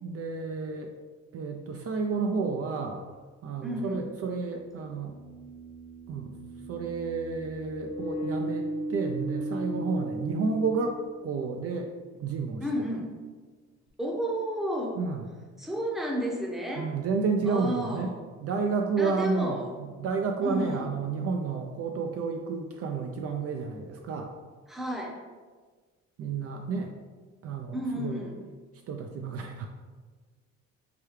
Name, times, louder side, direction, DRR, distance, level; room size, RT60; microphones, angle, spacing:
voice 1, 0.0-0.9 1.3-3.1 3.4-5.1 6.1-6.4 6.7-11.9 12.2-12.9 15.0-15.2 16.8-18.1 18.4-24.3 26.2-26.9 27.4-28.2 28.9-29.7, right 4 dB, 50° right, 3 dB, 0.4 m, -31 dB
sound 1, 3.2-3.3 4.7-11.6, right 1 dB, 40° left, 1.0 m, -36 dB
voice 2, 3.6-4.0 12.6-13.1 14.0-15.0 15.6-16.9 17.5-18.1 19.0-19.7 20.4-20.9 24.7-25.2 27.7-28.3, equal, ahead, -1 dB, 0.7 m, -31 dB
4.8 x 2.2 x 3.1 m, 1.4 s
cardioid pair, 90°, 30 cm